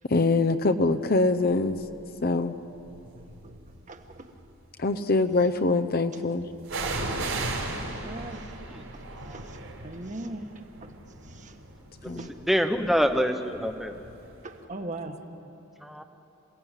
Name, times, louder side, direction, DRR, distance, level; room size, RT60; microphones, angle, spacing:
voice 1, 0.1-1.8 2.2-2.5 4.8-6.4 12.1-12.3, left 3 dB, 45° left, 8 dB, 0.8 m, -24 dB
sound 1, 1.7-2.1 2.8-3.8 6.7-14.3 14.6-14.7, right 2 dB, 75° right, 4.3 m, -36 dB
voice 2, 3.1-3.6 3.9-4.3 7.8-8.5 9.3-10.9 11.3-11.6 12.2-12.3 14.4-15.2, right 2 dB, 35° right, 5 dB, 1.5 m, -40 dB
voice 3, 12.5-14.0 15.8-16.0, equal, ahead, 6 dB, 1.0 m, -25 dB
27.5 x 17.5 x 9.1 m, 2.9 s
head